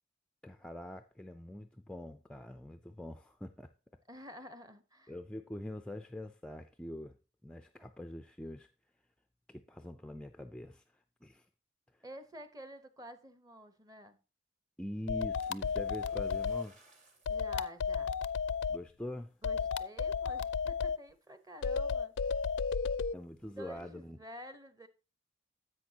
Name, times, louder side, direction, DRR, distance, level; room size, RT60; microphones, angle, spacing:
voice 1, 0.4-3.7 5.1-7.2 7.4-8.7 9.5-11.5 11.9-12.0 14.8-16.8 18.7-19.4 23.1-24.2, left 1 dB, 5° left, 0.4 m, -44 dB
voice 2, 4.1-5.1 12.0-14.2 17.3-18.1 19.4-22.3 23.5-24.9, right 1 dB, 20° right, 0.9 m, -50 dB
sound 1, 15.1-16.6 17.3-18.8 19.4-21.0 21.6-23.1, left 5 dB, 75° left, 0.4 m, -33 dB
Splash splatter, 15.4-17.5 18.1-18.3 18.9-19.0, right 2 dB, 40° right, 2.4 m, -63 dB
10.5 x 8.0 x 2.8 m
head